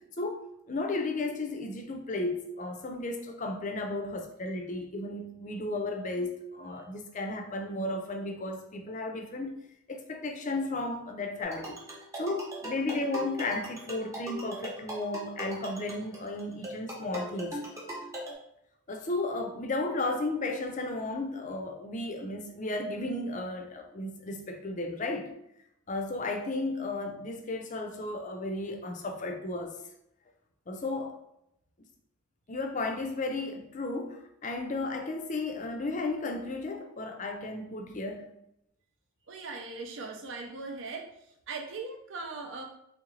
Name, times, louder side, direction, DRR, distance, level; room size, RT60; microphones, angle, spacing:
voice 1, 0.7-9.5 9.9-11.8 12.2-17.5 18.9-25.3 25.9-29.7 30.7-31.2 32.5-38.3, left 2 dB, 35° left, 4 dB, 0.5 m, -34 dB
sound 1, 11.4-18.3, equal, 15° right, 0.8 m, -40 dB
voice 2, 39.3-41.1 41.5-42.6, right 3 dB, 60° right, 1 dB, 0.6 m, -39 dB
3.9 x 3.1 x 3.1 m, 0.77 s
head